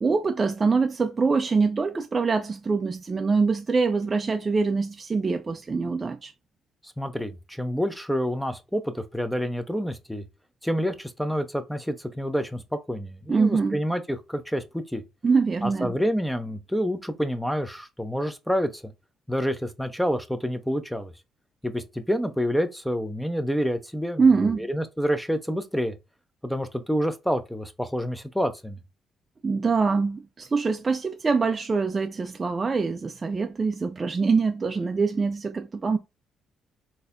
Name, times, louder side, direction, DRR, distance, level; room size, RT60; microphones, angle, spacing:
voice 1, 0.0-6.3 13.3-13.8 15.2-16.0 24.2-24.7 29.4-36.0, right 4 dB, 30° right, 0.4 m, -24 dB
voice 2, 7.0-10.2 10.6-15.0 15.6-18.9 19.3-21.1 21.6-26.0 26.4-28.8, equal, ahead, 0.7 m, -28 dB
3.9 x 2.7 x 2.5 m
cardioid pair, 90°, 0 cm